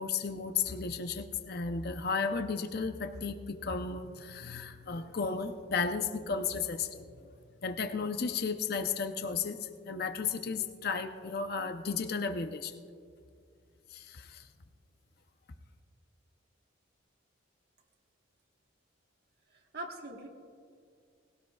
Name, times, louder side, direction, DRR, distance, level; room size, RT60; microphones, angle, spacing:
voice 1, 0.0-7.3 7.6-12.8 13.9-14.5, left 5 dB, 50° left, 7 dB, 0.6 m, -34 dB
voice 2, 19.5-20.3, right 2 dB, 50° right, 1 dB, 1.3 m, -42 dB
19.5 x 17.0 x 2.3 m, 2.3 s
head